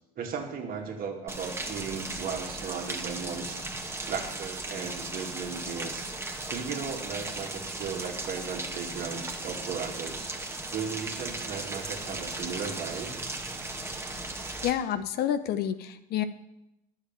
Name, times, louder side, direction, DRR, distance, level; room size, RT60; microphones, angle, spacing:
voice 1, 0.2-3.7 4.1-6.1 6.5-10.3 10.7-13.1, right 6 dB, 45° right, 2 dB, 2.6 m, -36 dB
Rain, 1.3-14.7, right 2 dB, 10° right, 1.8 m, -37 dB
voice 2, 14.6-16.2, left 10 dB, 50° left, 11 dB, 0.9 m, -29 dB
10.0 x 7.4 x 9.0 m, 0.85 s
hypercardioid pair, 75°, 20 cm